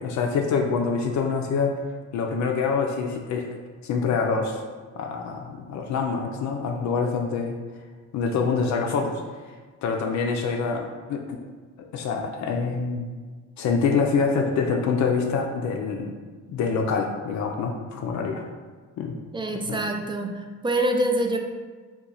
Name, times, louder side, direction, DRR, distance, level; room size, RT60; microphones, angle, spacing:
voice 1, 0.0-1.8 2.1-3.5 3.8-4.6 5.0-7.5 8.1-9.2 9.8-11.4 11.9-13.1 13.6-16.1 16.5-18.4 19.0-19.2 19.7-19.8, left 5 dB, 70° left, 2 dB, 0.5 m, -25 dB
voice 2, 19.3-21.4, right 1 dB, 15° right, 3 dB, 0.3 m, -25 dB
2.9 x 2.3 x 3.7 m, 1.5 s
cardioid pair, 90°, 30 cm